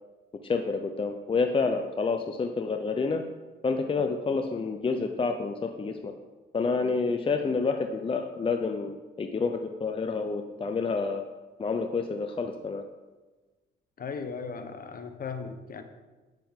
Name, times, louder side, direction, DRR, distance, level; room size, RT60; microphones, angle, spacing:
voice 1, 0.4-3.2 3.6-6.1 6.5-11.2 11.6-12.8, left 4 dB, 25° left, 6 dB, 0.6 m, -28 dB
voice 2, 14.0-15.8, left 5 dB, 45° left, 8 dB, 1.0 m, -37 dB
9.1 x 7.5 x 3.6 m, 1.2 s
cardioid pair, 90°, 20 cm